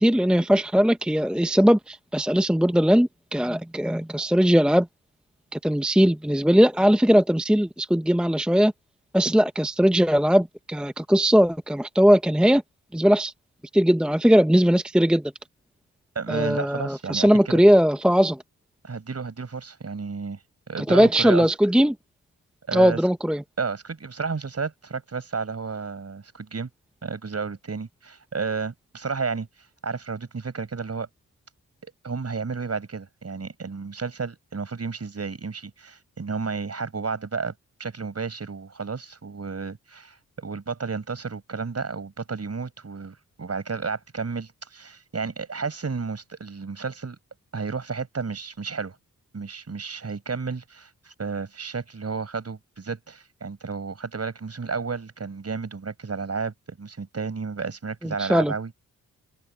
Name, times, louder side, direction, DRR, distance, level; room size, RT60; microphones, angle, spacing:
voice 1, 0.0-4.9 5.5-8.7 9.1-12.6 12.9-13.3 13.7-15.2 16.3-18.4 20.8-21.9 22.7-23.4 58.0-58.5, equal, 5° right, 0.8 m, -19 dB
voice 2, 16.2-17.6 18.8-20.4 20.7-21.5 22.7-23.0 23.6-26.7 27.0-29.5 29.8-31.1 32.0-37.5 37.8-47.2 47.5-49.0 49.3-58.7, right 5 dB, 45° right, 5.3 m, -32 dB
open air
cardioid pair, 70°, 34 cm